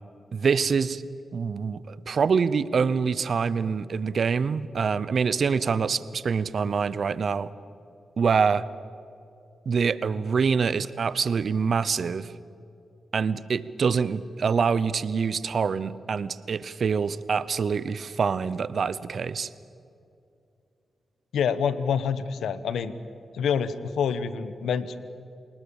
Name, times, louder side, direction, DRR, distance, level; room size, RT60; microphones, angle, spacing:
voice 1, 0.3-1.0 1.3-7.5 8.2-8.6 9.7-12.3 13.1-19.5, right 5 dB, 65° right, 17 dB, 0.8 m, -25 dB
voice 2, 21.3-22.9 23.3-25.0, left 7 dB, 85° left, 14 dB, 1.1 m, -27 dB
29.0 x 19.5 x 7.2 m, 2.6 s
supercardioid pair, 45°, 0 cm